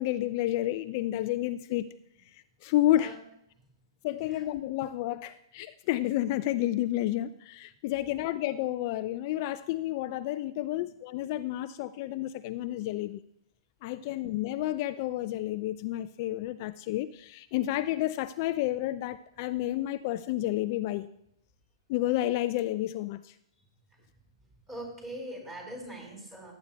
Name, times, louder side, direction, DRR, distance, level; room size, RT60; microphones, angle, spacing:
voice 1, 0.0-1.9 2.3-3.2 4.0-13.2 13.8-21.1 21.9-23.3, left 14 dB, 45° left, 12 dB, 0.3 m, -30 dB
voice 2, 24.7-26.5, right 1 dB, 15° right, -1 dB, 4.6 m, -42 dB
18.0 x 9.1 x 2.3 m, 0.76 s
hypercardioid pair, 125°, 2 cm